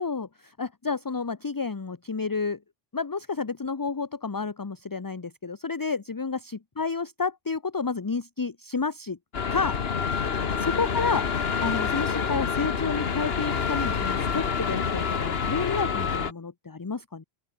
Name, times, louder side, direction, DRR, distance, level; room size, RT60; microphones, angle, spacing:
voice 1, 0.0-2.6 2.9-9.2 9.5-9.8 10.6-11.3 11.6-17.2, left 4 dB, 25° left, 0.6 m, -30 dB
sound 1, 9.3-16.3, left 6 dB, 75° left, 1.5 m, -27 dB
open air
omnidirectional pair, 1.0 m